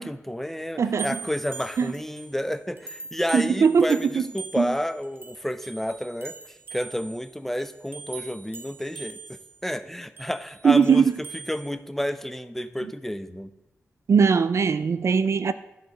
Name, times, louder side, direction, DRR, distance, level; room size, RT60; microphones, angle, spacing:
voice 1, 0.0-6.3 6.7-13.5, equal, 5° left, 0.7 m, -31 dB
voice 2, 0.8-1.2 1.8-1.9 3.3-4.2 4.6-4.7 10.6-11.1 14.1-15.5, right 6 dB, 60° right, 0.5 m, -20 dB
sound 1, 1.0-2.4 2.8-9.6 10.2-11.7, right 4 dB, 45° right, 1.6 m, -42 dB
12.0 x 4.0 x 7.6 m
cardioid pair, 45°, 5 cm